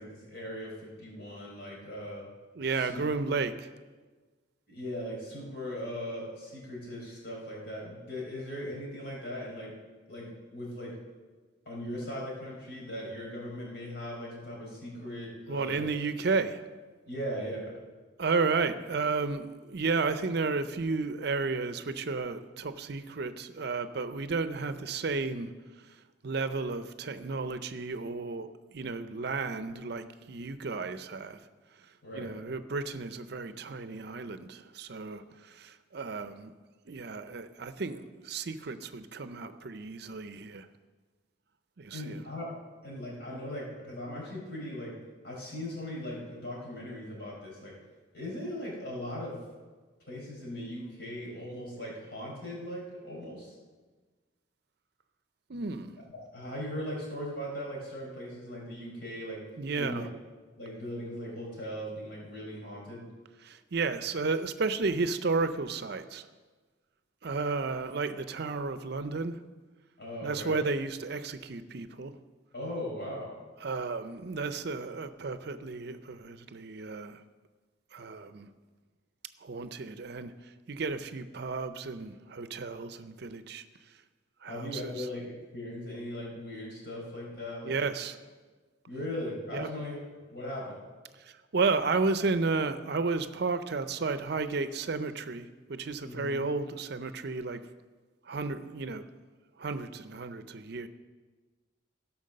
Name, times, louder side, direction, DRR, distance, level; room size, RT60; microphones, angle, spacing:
voice 1, 0.0-2.2 2.7-3.0 4.7-9.7 10.1-11.0 11.6-15.9 17.1-17.7 32.0-32.3 41.9-42.5 42.8-44.9 45.2-47.7 48.1-49.4 50.1-53.5 56.1-59.4 59.8-60.1 60.6-63.0 70.0-70.6 72.5-73.4 84.5-87.8 88.9-90.0 90.3-90.8 96.0-96.4, equal, 60° left, -3 dB, 4.4 m, -39 dB
voice 2, 2.6-3.7 15.5-16.6 18.2-25.5 26.2-31.4 32.1-36.5 36.9-40.7 41.8-42.2 55.5-56.0 59.6-60.1 63.4-66.2 67.2-69.4 70.2-72.1 73.6-77.2 77.9-78.5 79.4-80.3 80.7-83.6 84.4-85.1 87.6-88.2 89.5-89.7 91.2-97.6 98.3-99.0 99.6-100.9, right 4 dB, 60° right, 11 dB, 0.6 m, -33 dB
16.0 x 5.9 x 6.5 m, 1.4 s
head